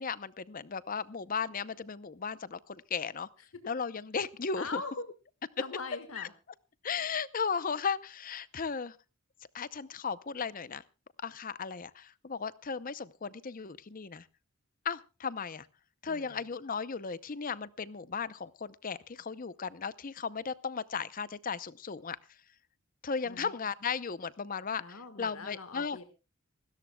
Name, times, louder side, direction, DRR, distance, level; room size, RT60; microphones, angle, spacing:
voice 1, 0.0-3.3 3.7-4.8 6.2-6.3 6.8-9.0 9.5-10.8 11.2-14.2 14.8-15.7 16.0-22.2 23.0-26.0, left 5 dB, 40° left, 17 dB, 0.6 m, -36 dB
voice 2, 4.6-5.1 5.6-6.3 7.0-7.1 16.1-16.4 23.2-23.5 24.8-26.0, left 3 dB, 70° left, 8 dB, 1.6 m, -42 dB
27.0 x 13.0 x 2.3 m, 0.30 s
head